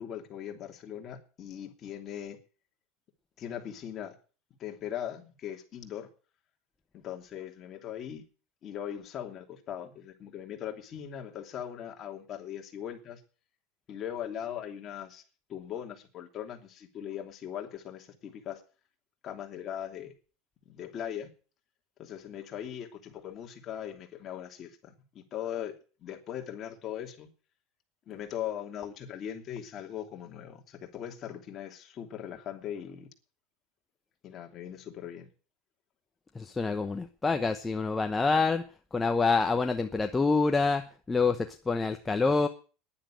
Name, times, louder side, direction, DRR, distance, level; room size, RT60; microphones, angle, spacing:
voice 1, 0.0-2.4 3.4-4.1 4.6-6.1 6.9-8.2 8.6-13.2 13.9-15.2 15.5-18.6 19.2-20.1 20.7-21.3 22.0-25.7 26.0-27.3 28.1-33.1 34.2-35.3, left 10 dB, 35° left, 3 dB, 2.9 m, -40 dB
voice 2, 36.3-38.6 38.9-42.5, left 4 dB, 15° left, 6 dB, 0.9 m, -27 dB
10.5 x 10.0 x 9.2 m, 0.38 s
supercardioid pair, 135°, 0 cm